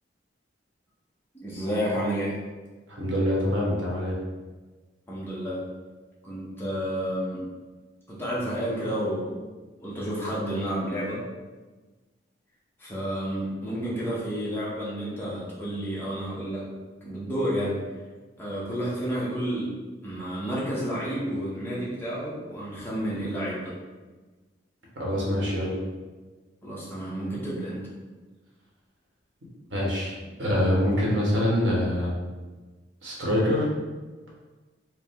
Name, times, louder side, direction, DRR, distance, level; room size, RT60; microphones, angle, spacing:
voice 1, 1.3-2.4 5.1-5.6 6.2-7.4 8.1-9.4 9.8-11.2 12.8-16.7 17.0-17.8 18.4-19.7 20.0-23.7 26.6-27.8, equal, 10° left, -8 dB, 0.8 m, -30 dB
voice 2, 2.9-4.1 25.0-25.7 29.7-30.1 30.4-32.1 33.0-33.7, left 1 dB, 90° right, -4 dB, 1.2 m, -25 dB
4.8 x 2.1 x 3.6 m, 1.3 s
head